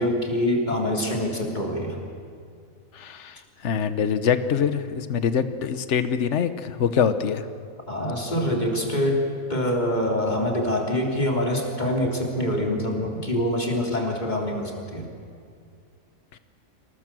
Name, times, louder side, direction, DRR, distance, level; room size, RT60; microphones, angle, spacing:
voice 1, 0.0-2.0 7.9-15.1, left 1 dB, 30° left, 0 dB, 3.5 m, -25 dB
voice 2, 2.9-7.4 8.4-8.5, left 7 dB, 60° left, 11 dB, 1.3 m, -24 dB
26.5 x 18.5 x 7.7 m, 2.3 s
omnidirectional pair, 1.4 m